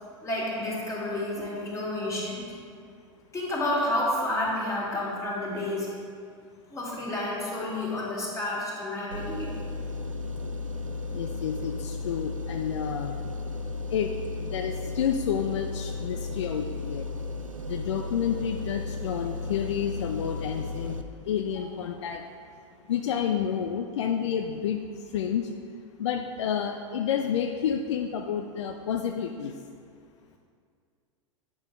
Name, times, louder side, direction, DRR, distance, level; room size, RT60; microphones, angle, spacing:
voice 1, 0.2-2.5 3.3-5.9 6.7-9.5, left 1 dB, 20° left, -5 dB, 2.1 m, -30 dB
sound 1, 9.1-21.0, left 3 dB, 90° right, 0.5 m, -34 dB
voice 2, 11.1-13.1 13.9-14.1 14.4-17.0 17.7-21.0 21.3-22.2 22.9-24.8 25.1-25.5 26.0-29.5, left 8 dB, 65° left, 5 dB, 0.4 m, -29 dB
8.7 x 6.1 x 3.7 m, 2.3 s
figure-of-eight pair, 90°, 16 cm